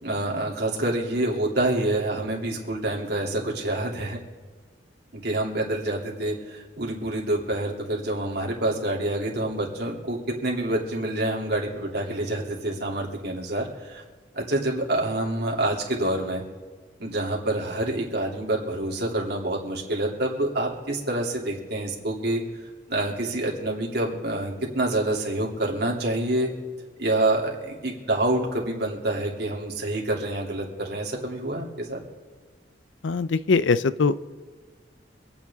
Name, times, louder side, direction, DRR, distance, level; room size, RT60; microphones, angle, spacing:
voice 1, 0.0-4.2 5.2-14.0 14.3-16.4 17.0-22.4 22.9-26.5 27.0-32.0, right 1 dB, 60° right, -2 dB, 2.9 m, -27 dB
voice 2, 33.0-34.1, left 4 dB, 85° left, 16 dB, 0.5 m, -21 dB
26.5 x 9.2 x 3.6 m, 1.6 s
head